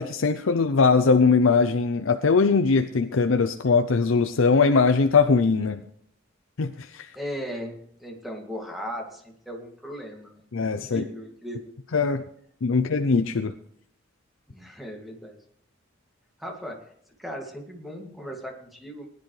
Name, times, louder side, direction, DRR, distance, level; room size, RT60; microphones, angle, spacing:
voice 1, 0.0-5.8 6.6-7.1 10.5-11.0 11.9-12.2 12.6-13.5, left 4 dB, 80° left, 8 dB, 0.6 m, -21 dB
voice 2, 7.2-10.4 10.8-11.7 14.5-15.4 16.4-16.9 17.2-19.1, equal, ahead, 1 dB, 2.2 m, -37 dB
19.5 x 10.5 x 3.3 m, 0.66 s
head